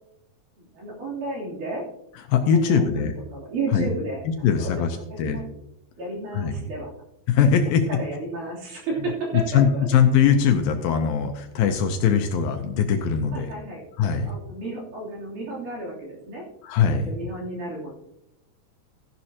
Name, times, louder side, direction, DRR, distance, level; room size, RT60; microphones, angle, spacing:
voice 1, 0.6-1.9 2.5-3.0 3.3-4.2 4.6-4.8 5.2-5.5 6.0-6.9 7.9-9.6 13.3-13.8 14.2-16.4 16.9-17.9, right 2 dB, 55° right, -5 dB, 4.6 m, -32 dB
voice 2, 2.1-3.1 3.7-3.9 4.3-5.4 6.3-6.6 7.3-7.9 9.3-13.5 14.0-14.3 16.6-17.1, left 7 dB, 75° left, 5 dB, 2.4 m, -21 dB
15.0 x 11.0 x 2.9 m, 0.82 s
omnidirectional pair, 4.5 m